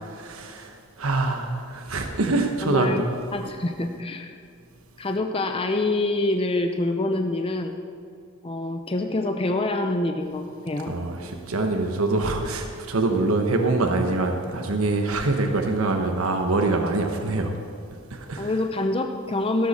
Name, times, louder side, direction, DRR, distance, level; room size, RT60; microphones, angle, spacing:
voice 1, 0.2-3.1 10.9-17.5 18.1-18.5, right 2 dB, 75° right, 4 dB, 1.2 m, -24 dB
voice 2, 2.6-3.1 3.3-4.3 5.0-7.8 8.4-11.0 18.4-19.7, left 2 dB, 25° left, 5 dB, 0.6 m, -26 dB
16.5 x 13.5 x 4.3 m, 2.4 s
head